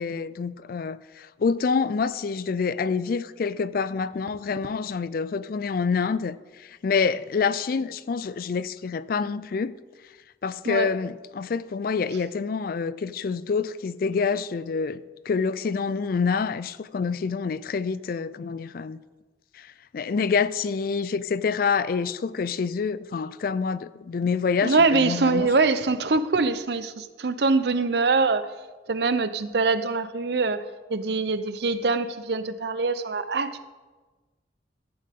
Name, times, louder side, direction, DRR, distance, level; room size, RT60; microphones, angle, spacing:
voice 1, 0.0-9.8 10.4-19.0 19.5-25.5, left 5 dB, 50° left, 0.3 m, -27 dB
voice 2, 24.6-28.5 28.9-30.6 30.9-33.7, right 3 dB, 60° right, 0.6 m, -23 dB
14.5 x 8.5 x 3.7 m
head